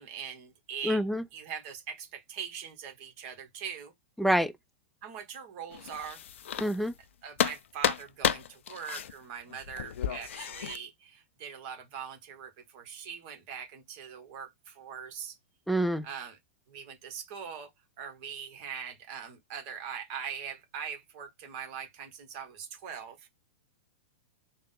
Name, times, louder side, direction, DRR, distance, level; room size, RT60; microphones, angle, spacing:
voice 1, 0.0-1.0 1.3-3.9 5.0-6.2 7.2-15.3 16.0-16.4 16.7-17.7 18.0-23.3, right 7 dB, 50° right, 1.2 m, -41 dB
voice 2, 0.8-1.2 4.2-4.5 6.6-6.9 15.7-16.1, equal, ahead, 0.4 m, -26 dB
sound 1, 5.7-7.0 7.4-10.8, left 9 dB, 75° left, 0.4 m, -32 dB
3.6 x 2.1 x 3.6 m
hypercardioid pair, 115°, 7 cm